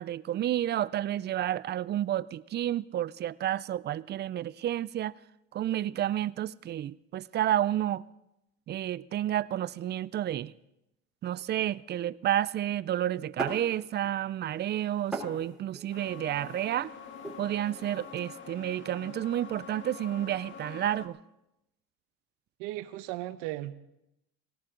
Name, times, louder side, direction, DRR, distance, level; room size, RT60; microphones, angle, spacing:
voice 1, 0.0-5.1 5.5-8.0 8.7-10.5 11.2-16.9 17.4-21.2, right 12 dB, 35° right, 0.4 m, -30 dB
sound 1, 13.4-14.2 14.5-18.2, right 2 dB, ahead, 3.6 m, -41 dB
sound 2, 15.9-21.1, left 6 dB, 35° left, 1.6 m, -46 dB
voice 2, 22.6-23.7, right 16 dB, 75° right, 1.0 m, -36 dB
18.0 x 18.0 x 3.8 m
supercardioid pair, 110°, 32 cm